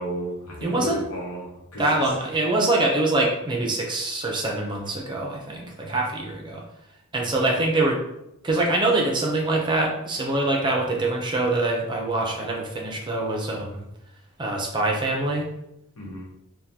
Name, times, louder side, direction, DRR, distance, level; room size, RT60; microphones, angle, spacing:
voice 1, 0.0-2.0 16.0-16.3, equal, 80° left, -3 dB, 1.1 m, -33 dB
voice 2, 0.6-1.0 1.8-6.6 7.1-8.0 8.4-13.8 14.4-15.5, right 2 dB, 20° right, 0 dB, 0.5 m, -24 dB
3.5 x 2.2 x 2.8 m, 0.84 s
head